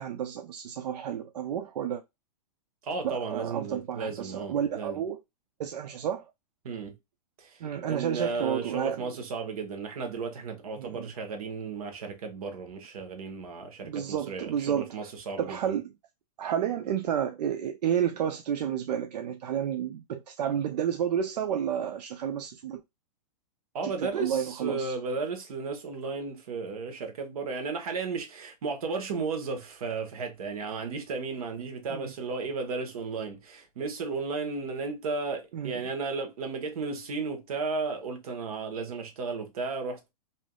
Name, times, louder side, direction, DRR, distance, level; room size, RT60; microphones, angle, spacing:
voice 1, 0.0-2.0 3.0-5.2 5.6-6.3 7.6-9.1 10.8-11.1 13.8-14.9 15.4-15.8 16.4-22.8 23.8-24.9 31.9-32.1 35.5-35.8, right 9 dB, 80° right, 0.4 m, -31 dB
voice 2, 2.8-5.0 6.6-6.9 7.4-15.8 23.7-40.1, right 4 dB, 60° right, 1.1 m, -34 dB
3.3 x 2.7 x 2.2 m
hypercardioid pair, 170°, 21 cm